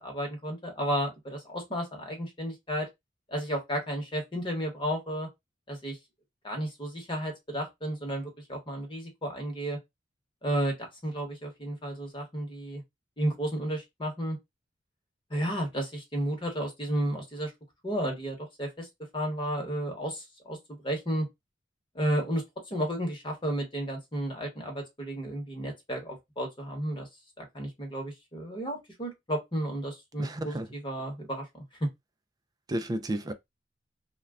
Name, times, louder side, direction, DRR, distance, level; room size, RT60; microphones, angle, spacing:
voice 1, 0.0-2.9 3.3-5.3 5.7-6.0 6.4-9.8 10.4-12.8 13.2-14.4 15.3-17.5 17.8-18.9 19.1-21.3 21.9-27.1 27.4-31.6, equal, 25° left, 1.0 m, -33 dB
voice 2, 30.2-30.7 32.7-33.3, right 1 dB, 20° right, 0.3 m, -32 dB
2.2 x 2.2 x 3.4 m
head